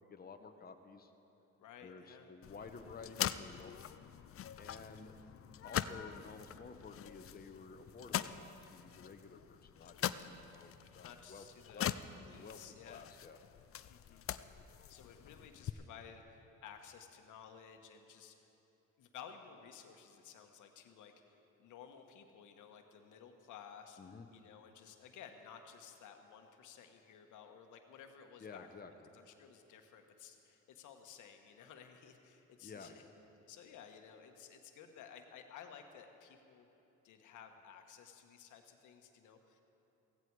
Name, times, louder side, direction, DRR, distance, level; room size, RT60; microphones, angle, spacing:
voice 1, 0.1-1.1 1.8-3.7 4.6-5.2 5.6-11.4 11.7-11.9 12.3-12.6 12.8-13.4 24.0-24.3 28.4-28.9 32.6-33.0, left 4 dB, 30° left, 6 dB, 1.0 m, -52 dB
voice 2, 1.6-2.3 5.6-5.7 11.0-13.0 13.9-14.3 14.9-18.5 19.0-24.0 24.3-28.8 29.1-33.0 33.5-36.7 37.0-39.6, left 7 dB, 85° left, 5 dB, 1.4 m, -55 dB
sound 1, 2.4-15.7, left 10 dB, 50° left, 0.5 m, -43 dB
16.0 x 16.0 x 4.8 m, 3.0 s
cardioid pair, 90°, 30 cm